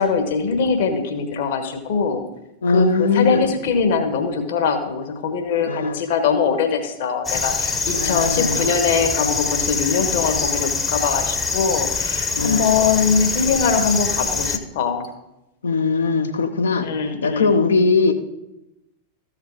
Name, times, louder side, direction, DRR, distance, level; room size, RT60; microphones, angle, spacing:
voice 1, 0.0-2.2 2.7-15.1 16.8-17.5, left 5 dB, 55° left, 6 dB, 1.4 m, -22 dB
voice 2, 2.6-3.5 5.7-6.0 7.9-8.7 12.3-12.7 15.6-16.9 17.2-18.1, left 4 dB, 70° left, 7 dB, 0.9 m, -20 dB
sound 1, 7.3-14.6, left 4 dB, 15° left, 0.9 m, -24 dB
14.0 x 4.9 x 4.8 m, 0.91 s
figure-of-eight pair, 90°, 0 cm